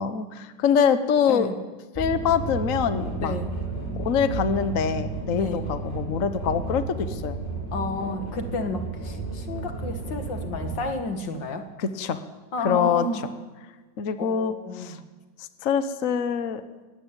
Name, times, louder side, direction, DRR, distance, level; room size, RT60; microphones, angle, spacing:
voice 1, 0.0-1.5 2.0-3.3 3.9-7.4 11.8-12.2 12.6-13.1 14.0-15.0 15.4-16.6, left 7 dB, 50° left, 10 dB, 1.4 m, -24 dB
voice 2, 1.2-1.5 3.2-3.5 5.3-5.6 7.7-11.7 12.5-13.2 14.2-15.0, left 3 dB, 85° left, 6 dB, 2.7 m, -31 dB
sound 1, 1.9-10.8, right 3 dB, 25° left, 6.0 m, -32 dB
22.0 x 18.0 x 9.0 m, 1.3 s
omnidirectional pair, 1.9 m